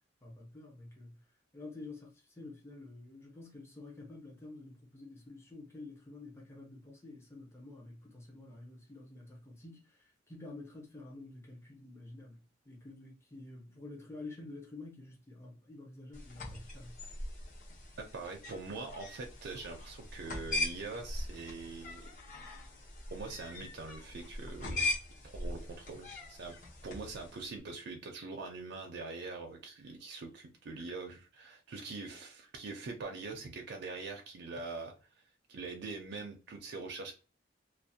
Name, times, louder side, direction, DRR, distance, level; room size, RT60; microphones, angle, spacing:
voice 1, 0.2-1.1 1.5-12.4 12.7-17.0, left 2 dB, 15° left, 0.6 m, -49 dB
sound 1, 16.1-27.5, left 2 dB, 45° left, 0.8 m, -41 dB
voice 2, 18.0-22.1 23.1-24.9 25.2-26.5 26.8-34.9 35.5-37.1, right 3 dB, 60° right, 0.4 m, -43 dB
2.4 x 2.0 x 2.6 m
head